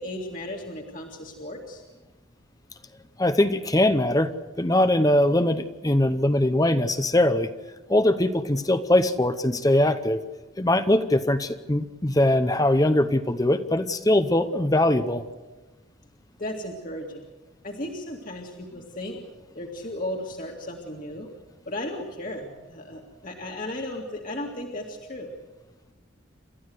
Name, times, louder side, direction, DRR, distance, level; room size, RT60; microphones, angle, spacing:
voice 1, 0.0-1.8 16.4-17.2 17.6-19.2 19.6-21.3 21.7-25.3, left 1 dB, 40° left, 0 dB, 2.2 m, -35 dB
voice 2, 3.2-4.3 4.6-7.5 7.9-10.2 10.6-15.2, left 1 dB, 20° left, 10 dB, 0.8 m, -21 dB
28.5 x 13.5 x 7.9 m, 1.2 s
head